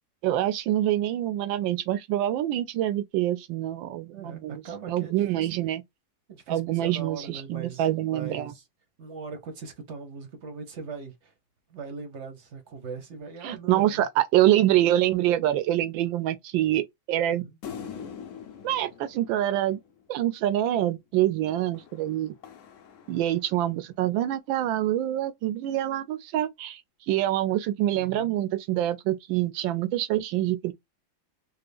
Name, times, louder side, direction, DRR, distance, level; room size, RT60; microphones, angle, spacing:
voice 1, 0.2-4.6 4.9-5.8 6.5-8.5 13.4-17.5 18.6-19.8 20.1-22.3 23.1-26.8 27.1-30.7, right 13 dB, 80° right, 1.3 m, -26 dB
voice 2, 4.1-5.5 6.3-8.6 9.0-11.3 11.7-14.0 17.3-17.6 27.9-28.3, right 5 dB, 50° right, 0.9 m, -40 dB
sound 1, 17.6-20.3 21.7-23.8, left 7 dB, 75° left, 0.7 m, -44 dB
3.4 x 2.2 x 3.3 m
omnidirectional pair, 2.1 m